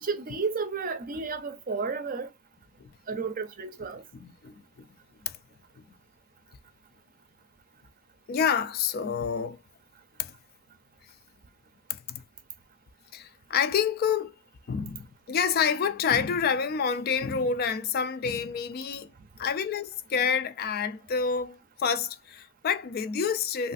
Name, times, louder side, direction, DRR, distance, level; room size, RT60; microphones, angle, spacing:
voice 1, 0.0-2.3 3.1-4.0, right 4 dB, 40° right, 0.5 m, -32 dB
voice 2, 4.1-4.9 5.3-5.4 5.8-5.9 8.3-9.6 10.2-10.3 11.9-12.2 13.1-14.4 14.7-19.1 19.4-23.7, left 6 dB, 45° left, 0.3 m, -28 dB
3.1 x 2.4 x 2.4 m
head